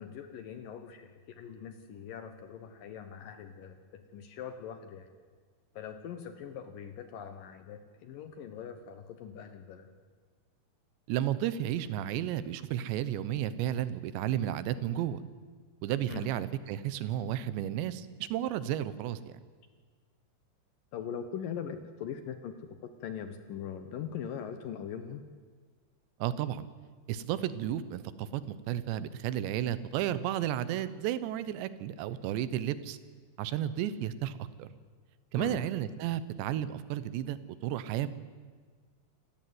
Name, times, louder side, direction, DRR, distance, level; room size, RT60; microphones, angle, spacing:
voice 1, 0.0-5.1 5.8-9.9 16.1-16.3 20.9-22.7 23.0-25.2 35.3-35.6, left 8 dB, 70° left, 9 dB, 2.2 m, -41 dB
voice 2, 11.1-15.2 15.8-19.3 26.2-26.7 27.1-28.4 28.7-33.0 33.4-34.7 35.3-37.4 37.6-38.1, right 11 dB, 80° right, 15 dB, 3.1 m, -32 dB
27.5 x 15.0 x 9.4 m, 1.5 s
omnidirectional pair, 5.3 m